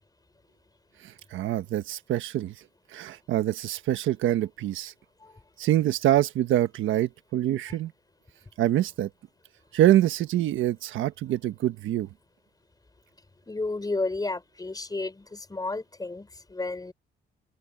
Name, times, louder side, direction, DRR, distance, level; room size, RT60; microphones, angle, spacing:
voice 1, 1.0-2.5 2.9-4.9 5.6-7.9 8.6-9.1 9.7-12.1, right 13 dB, 80° right, 1.4 m, -25 dB
voice 2, 13.5-16.9, left 3 dB, 20° left, 4.3 m, -32 dB
open air
cardioid pair, 90°, 20 cm